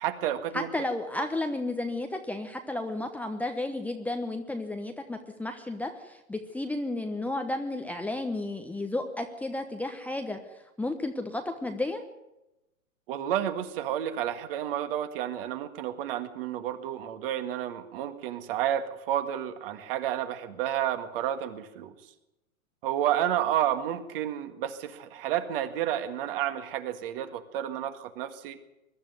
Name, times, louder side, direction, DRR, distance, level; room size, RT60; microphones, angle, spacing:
voice 1, 0.0-0.7 13.1-21.9 22.8-28.6, right 11 dB, 40° right, 9 dB, 2.0 m, -31 dB
voice 2, 0.5-10.4 10.8-12.0, left 2 dB, 5° left, 5 dB, 1.1 m, -32 dB
22.0 x 12.5 x 9.4 m, 0.94 s
figure-of-eight pair, 115°, 42 cm